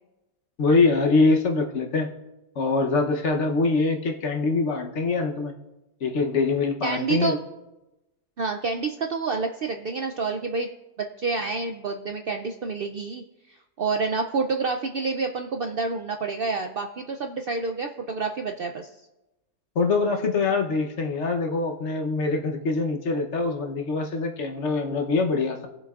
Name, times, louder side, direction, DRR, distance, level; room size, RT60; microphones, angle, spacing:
voice 1, 0.6-2.1 2.6-5.5 6.0-7.4 19.8-25.7, left 3 dB, 55° left, 3 dB, 1.1 m, -24 dB
voice 2, 6.8-7.4 8.4-10.7 11.0-13.2 13.8-18.9, right 4 dB, 60° right, 4 dB, 0.6 m, -28 dB
18.5 x 7.1 x 2.4 m, 0.99 s
omnidirectional pair, 1.5 m